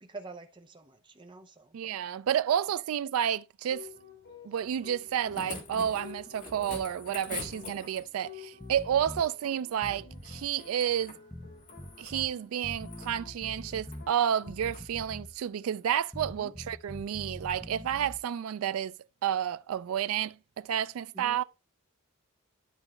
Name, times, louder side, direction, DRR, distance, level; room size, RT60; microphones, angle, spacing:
voice 1, 0.0-1.8 16.4-16.5 21.1-21.4, right 3 dB, 25° right, 0.8 m, -47 dB
voice 2, 1.7-3.9 4.4-11.2 12.0-18.9 19.2-21.4, right 9 dB, 75° right, 0.3 m, -30 dB
sound 1, 3.7-14.6, left 8 dB, 60° left, 4.4 m, -52 dB
sound 2, 4.9-8.3 10.2-11.2 11.6-12.2 12.7-13.1 13.8-14.0 14.6-14.9 16.2-16.3, left 3 dB, 40° left, 1.8 m, -44 dB
sound 3, 8.6-9.3 9.7-10.5 11.3-12.3 12.6-14.1 14.5-15.4 16.1-18.2, left 1 dB, 5° left, 0.6 m, -44 dB
11.0 x 4.0 x 3.2 m
head